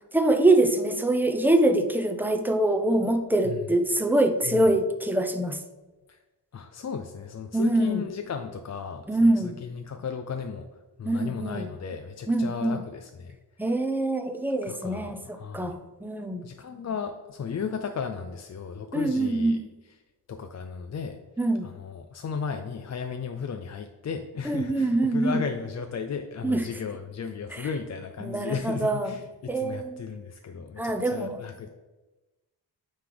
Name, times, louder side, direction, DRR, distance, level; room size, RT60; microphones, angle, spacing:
voice 1, 0.1-5.6 7.5-8.0 9.1-9.5 11.0-11.7 12.3-12.7 13.6-16.4 18.9-19.6 21.4-21.6 24.5-25.4 26.4-26.6 28.2-29.1 29.5-30.0 30.8-31.4, right 2 dB, 5° right, 6 dB, 0.6 m, -24 dB
voice 2, 6.5-10.7 11.0-13.4 13.6-13.7 14.6-15.8 16.4-19.6 20.3-21.2 21.6-31.7, left 6 dB, 40° left, 6 dB, 0.4 m, -35 dB
9.1 x 3.3 x 3.9 m, 1.1 s
wide cardioid pair, 100°, 41 cm